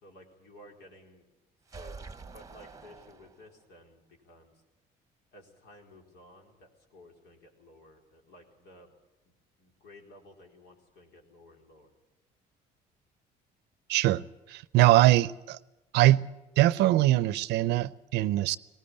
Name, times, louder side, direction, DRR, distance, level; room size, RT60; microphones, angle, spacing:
voice 1, 0.0-1.2 1.7-2.0 2.2-4.5 5.3-8.9 9.2-9.3 9.6-11.9, left 1 dB, 75° left, 4.3 m, -55 dB
sound 1, 1.7-3.7, right 4 dB, 20° right, 1.0 m, -47 dB
voice 2, 13.9-14.2 14.5-15.6 15.9-16.2 16.6-18.6, right 15 dB, 85° right, 0.6 m, -22 dB
18.5 x 18.0 x 8.7 m
cardioid pair, 110°, 17 cm